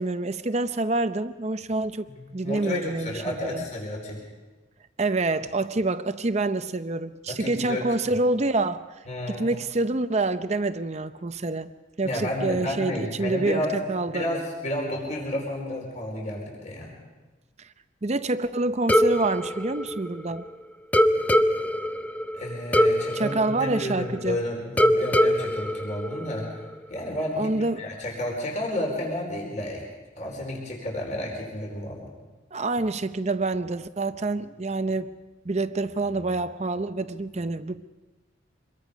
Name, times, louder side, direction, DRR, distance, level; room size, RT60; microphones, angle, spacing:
voice 1, 0.0-2.1 2.3-3.6 5.0-8.8 9.3-11.7 12.0-14.3 17.6-17.7 18.0-20.5 23.1-24.4 27.4-27.9 32.5-35.1 35.4-37.8, right 2 dB, 35° right, 0.6 m, -27 dB
voice 2, 2.1-4.2 7.3-7.8 9.1-9.5 12.0-13.8 14.1-17.0 22.3-26.5 26.9-29.9 30.2-32.1, left 1 dB, 40° left, 4.6 m, -31 dB
sound 1, 18.9-20.5 20.9-24.3 24.8-26.7, equal, 10° left, 0.7 m, -23 dB
25.5 x 22.0 x 5.3 m
head